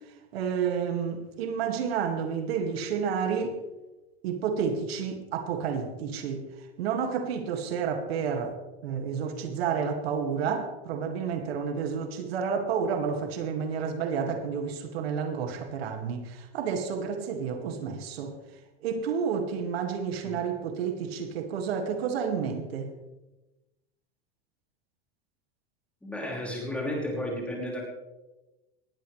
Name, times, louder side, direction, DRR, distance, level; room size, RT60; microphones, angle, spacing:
voice 1, 0.3-3.6 4.2-6.4 6.8-8.5 8.8-18.3 18.8-22.9, right 6 dB, 85° right, 5 dB, 2.3 m, -30 dB
voice 2, 26.0-27.8, left 1 dB, 5° left, -2 dB, 5.2 m, -33 dB
19.5 x 15.0 x 3.3 m, 1.0 s
supercardioid pair, 140°, 30 cm